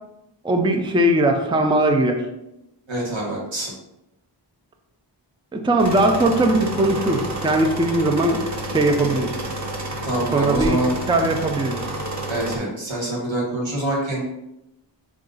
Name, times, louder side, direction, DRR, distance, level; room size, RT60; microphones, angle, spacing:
voice 1, 0.4-2.2 5.5-9.3 10.3-10.8 11.1-11.8, right 1 dB, 10° right, 4 dB, 0.4 m, -20 dB
voice 2, 2.9-3.7 10.0-10.9 12.3-14.2, right 1 dB, 85° right, -4 dB, 1.3 m, -25 dB
sound 1, 5.8-12.6, right 1 dB, 40° right, 0.7 m, -30 dB
3.8 x 2.5 x 3.8 m, 0.88 s
wide cardioid pair, 45°, 45 cm